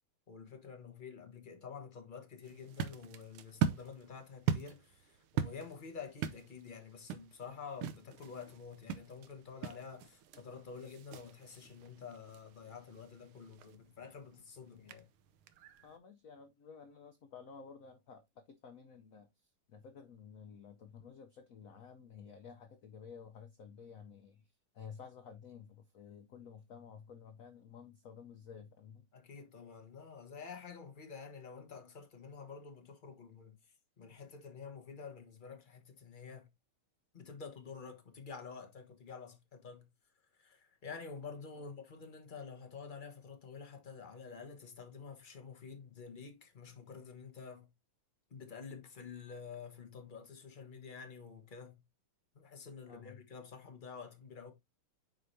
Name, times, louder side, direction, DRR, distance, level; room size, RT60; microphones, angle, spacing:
voice 1, 0.3-15.1 29.1-33.6 34.0-36.5 37.1-39.9 40.4-47.7 48.3-51.8 52.3-54.5, left 5 dB, 30° left, 1.0 m, -49 dB
sound 1, 2.4-16.0, right 8 dB, 85° right, 1.6 m, -41 dB
voice 2, 15.8-29.1 41.6-41.7 52.8-53.2, left 6 dB, 85° left, 0.7 m, -53 dB
7.7 x 4.8 x 2.6 m
omnidirectional pair, 2.3 m